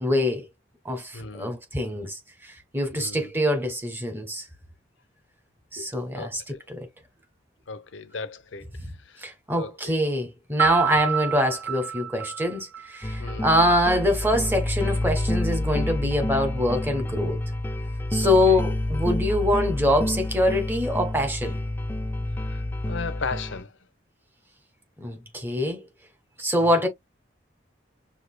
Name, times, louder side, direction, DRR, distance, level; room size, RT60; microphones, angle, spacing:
voice 1, 0.0-0.5 0.8-2.2 2.7-4.4 5.7-6.9 9.2-17.4 18.1-21.6 25.0-25.8 26.4-26.9, left 1 dB, 10° right, 1.3 m, -24 dB
voice 2, 1.1-1.5 3.0-3.3 6.1-6.6 7.7-8.7 9.6-9.9 10.9-11.0 13.2-13.5 18.2-18.6 22.5-23.7 26.6-26.8, left 4 dB, 85° left, 0.7 m, -36 dB
Piano, 10.6-13.4, right 8 dB, 80° right, 1.1 m, -28 dB
sound 1, 13.0-23.6, left 1 dB, 10° left, 0.3 m, -28 dB
6.4 x 2.8 x 2.2 m
head